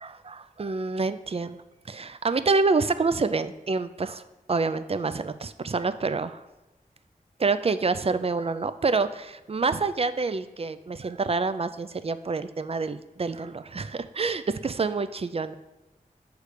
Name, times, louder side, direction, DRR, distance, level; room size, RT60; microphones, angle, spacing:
voice 1, 0.0-1.6 1.9-4.2 4.5-6.4 7.4-15.5, right 4 dB, 40° right, 12 dB, 0.3 m, -27 dB
6.6 x 3.2 x 4.9 m, 1.1 s
wide cardioid pair, 50°, 15 cm